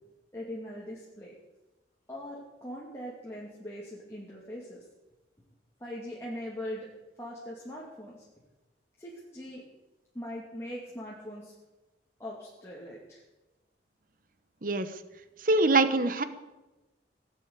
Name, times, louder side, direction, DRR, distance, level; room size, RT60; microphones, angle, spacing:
voice 1, 0.3-1.3 2.1-4.8 5.8-6.9 7.2-8.3 9.0-9.6 10.1-11.5 12.2-13.2, equal, 15° left, -5 dB, 2.5 m, -41 dB
voice 2, 15.4-16.2, right 2 dB, 50° right, 11 dB, 1.1 m, -23 dB
18.0 x 8.2 x 8.3 m, 1.1 s
head